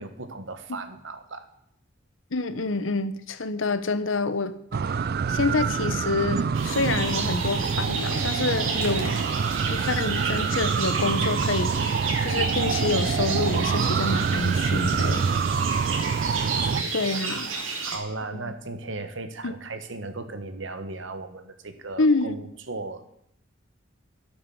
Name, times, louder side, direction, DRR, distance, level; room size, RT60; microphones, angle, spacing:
voice 1, 0.0-1.4 15.5-15.8 16.6-23.1, right 2 dB, 70° right, 9 dB, 1.5 m, -37 dB
voice 2, 2.3-4.6 5.3-9.2 9.7-15.3 16.9-17.5 18.3-18.5 19.4-19.5 22.0-22.5, left 3 dB, 80° left, 13 dB, 1.0 m, -27 dB
sound 1, 4.7-16.8, right 5 dB, 55° right, 0.4 m, -26 dB
sound 2, 6.5-18.0, right 4 dB, 90° right, 3.6 m, -32 dB
13.0 x 8.6 x 7.2 m, 0.76 s
head